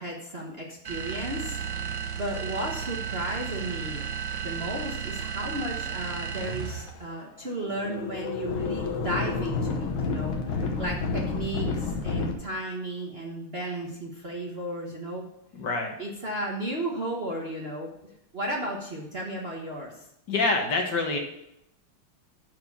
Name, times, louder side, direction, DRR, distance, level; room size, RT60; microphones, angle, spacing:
voice 1, 0.0-1.6 2.1-4.0 4.4-15.3 16.0-20.0, right 1 dB, 35° right, -1 dB, 1.2 m, -34 dB
sound 1, 0.8-7.0, right 7 dB, 65° right, 1.5 m, -34 dB
sound 2, 5.2-5.3 6.1-6.2 6.4-6.9 7.5-12.3, left 4 dB, 70° left, 1.8 m, -30 dB
voice 2, 15.6-16.0 20.3-21.2, left 3 dB, 55° left, 3 dB, 1.7 m, -26 dB
11.0 x 4.7 x 6.9 m, 0.78 s
omnidirectional pair, 2.4 m